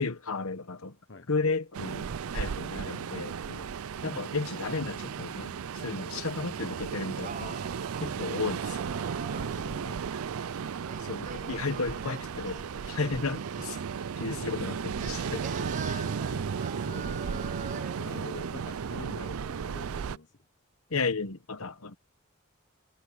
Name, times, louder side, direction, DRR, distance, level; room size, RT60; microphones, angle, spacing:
voice 1, 0.0-1.0 1.3-3.4 4.0-7.6 8.0-8.9 11.0-16.1 20.9-22.0, left 4 dB, 75° left, 1.3 m, -34 dB
Ocean, 1.7-20.2, right 6 dB, 75° right, 0.4 m, -35 dB
voice 2, 5.8-6.3 9.1-10.0 14.1-14.5 15.0-15.1 15.8-20.4, left 2 dB, 50° left, 1.2 m, -47 dB
Singing, 6.9-9.7 10.8-14.0 15.0-18.1, right 5 dB, 35° right, 0.7 m, -44 dB
head